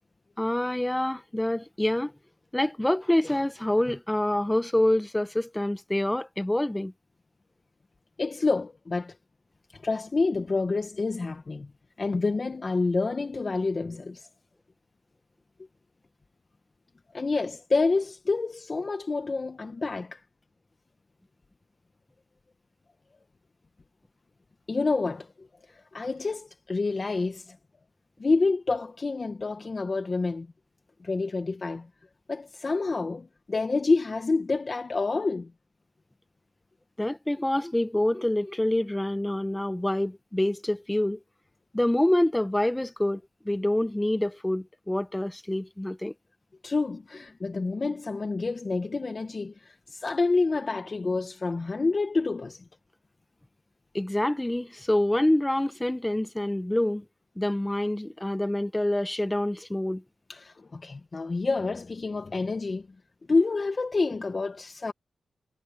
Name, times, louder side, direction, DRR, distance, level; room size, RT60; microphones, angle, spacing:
voice 1, 0.4-2.1 2.5-6.9 37.0-41.2 41.7-46.1 53.9-57.0 57.4-60.0, left 1 dB, 10° left, 1.2 m, -26 dB
voice 2, 8.2-9.2 9.7-11.7 12.0-14.3 17.1-20.2 24.7-25.3 25.7-27.6 28.2-30.5 31.0-31.9 32.3-35.5 46.6-52.6 60.3-62.9 63.3-64.9, left 3 dB, 40° left, 1.2 m, -28 dB
cardioid pair, 75°, 0 cm